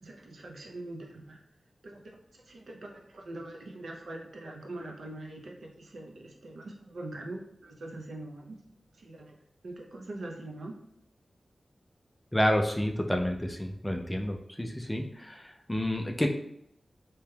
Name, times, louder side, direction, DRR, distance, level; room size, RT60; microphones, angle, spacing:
voice 1, 0.0-1.4 1.8-8.6 8.9-9.4 9.6-10.7, right 2 dB, 75° right, 0 dB, 0.5 m, -43 dB
voice 2, 12.3-16.3, equal, 10° left, 3 dB, 0.3 m, -29 dB
3.2 x 2.8 x 2.2 m, 0.72 s
wide cardioid pair, 130°, 0 cm